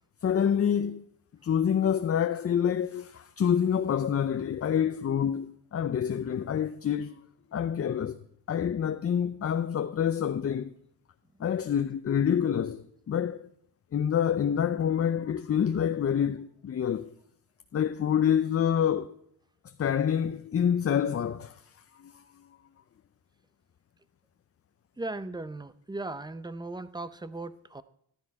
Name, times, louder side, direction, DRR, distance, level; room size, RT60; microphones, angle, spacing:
voice 1, 0.2-1.1 1.4-7.2 7.5-8.2 8.5-10.7 11.4-13.5 13.9-17.1 17.7-19.2 19.8-21.6 22.0-22.2, left 8 dB, 40° left, 0.5 m, -27 dB
voice 2, 25.0-27.8, right 2 dB, 10° right, 0.6 m, -37 dB
14.0 x 12.0 x 4.7 m
cardioid pair, 110°, 38 cm